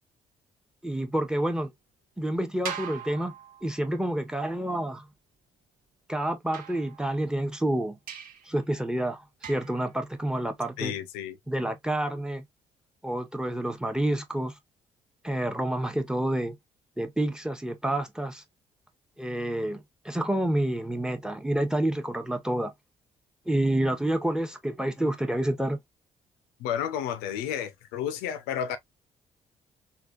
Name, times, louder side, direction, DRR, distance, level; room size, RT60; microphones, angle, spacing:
voice 1, 0.8-1.7 2.2-3.3 3.6-5.0 6.1-8.0 8.5-10.9 11.5-12.4 13.0-14.5 15.2-16.5 17.0-18.4 19.2-22.7 23.5-25.8, right 1 dB, 5° right, 0.8 m, -28 dB
sound 1, 2.6-4.0 6.5-7.4 8.1-8.5 9.4-9.9, right 8 dB, 65° right, 0.7 m, -41 dB
voice 2, 10.8-11.4 26.6-28.8, left 9 dB, 80° left, 0.4 m, -31 dB
3.4 x 2.2 x 2.4 m
hypercardioid pair, 50°, 16 cm